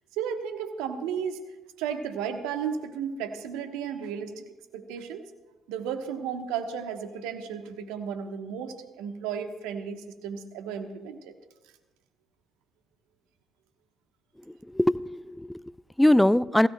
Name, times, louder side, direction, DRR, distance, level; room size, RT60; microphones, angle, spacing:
voice 1, 0.2-1.4 1.8-4.4 4.7-5.2 5.7-11.3, right 7 dB, 75° right, 7 dB, 1.1 m, -34 dB
voice 2, 14.5-16.7, left 1 dB, 5° left, 19 dB, 0.4 m, -23 dB
21.0 x 16.0 x 2.2 m, 1.1 s
hypercardioid pair, 50°, 0 cm